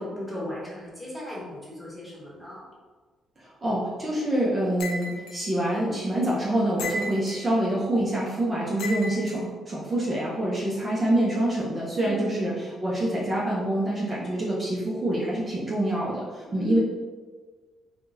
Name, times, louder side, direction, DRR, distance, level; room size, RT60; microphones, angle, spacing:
voice 1, 0.0-2.6 11.9-12.5 16.5-16.8, left 1 dB, 5° left, -7 dB, 1.2 m, -36 dB
voice 2, 3.6-16.8, right 1 dB, 30° right, -6 dB, 0.7 m, -26 dB
sound 1, 4.8-5.4 6.8-7.5 8.8-9.4, left 1 dB, 85° left, 0.5 m, -34 dB
3.6 x 2.3 x 2.7 m, 1.4 s
cardioid pair, 90°, 0 cm